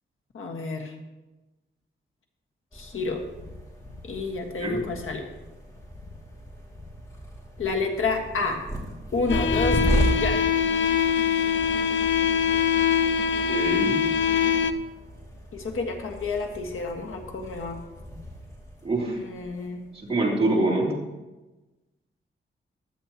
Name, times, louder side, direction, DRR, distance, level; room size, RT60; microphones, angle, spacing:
voice 1, 0.3-1.0 2.7-3.2 4.0-5.3 7.6-8.6 9.1-10.4 15.5-17.8 19.1-19.8, left 3 dB, 85° left, 2 dB, 1.7 m, -29 dB
sound 1, 2.7-20.1, right 1 dB, 15° left, 2.6 m, -35 dB
sound 2, 9.3-14.7, left 7 dB, 70° left, 0.6 m, -23 dB
voice 2, 13.5-14.0 18.8-19.2 20.0-20.9, right 2 dB, 30° right, -4 dB, 3.2 m, -24 dB
15.5 x 12.0 x 3.0 m, 1.1 s
wide cardioid pair, 125°, 21 cm